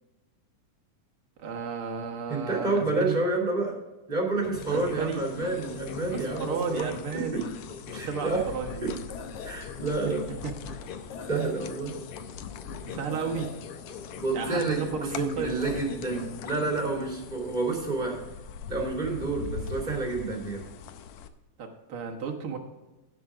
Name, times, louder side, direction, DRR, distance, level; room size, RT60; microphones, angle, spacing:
voice 1, 1.4-3.2 4.7-5.2 6.1-7.5 7.9-8.9 10.1-10.2 10.4-10.7 12.9-13.5 14.3-15.6 21.6-22.6, right 6 dB, 60° right, 2 dB, 1.5 m, -33 dB
voice 2, 2.3-3.7 4.1-6.9 7.3-7.4 7.9-8.4 8.8-8.9 9.4-10.3 11.3-11.9 14.2-18.2 18.7-20.6, right 3 dB, 15° right, -1 dB, 2.2 m, -29 dB
sound 1, 4.4-16.2, left 6 dB, 65° left, 2.2 m, -42 dB
sound 2, 4.5-21.3, left 7 dB, 90° left, 1.5 m, -43 dB
17.0 x 6.1 x 3.7 m, 1.1 s
omnidirectional pair, 4.0 m